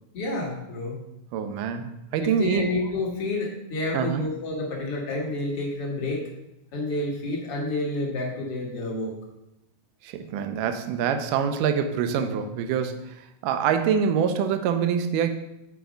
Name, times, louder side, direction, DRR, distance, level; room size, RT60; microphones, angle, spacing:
voice 1, 0.1-1.0 2.2-6.2 6.7-9.1, left 2 dB, 55° left, -2 dB, 1.7 m, -29 dB
voice 2, 1.3-2.7 3.9-4.2 10.0-15.3, right 7 dB, 80° right, 7 dB, 2.0 m, -25 dB
7.1 x 4.5 x 5.0 m, 0.88 s
omnidirectional pair, 4.2 m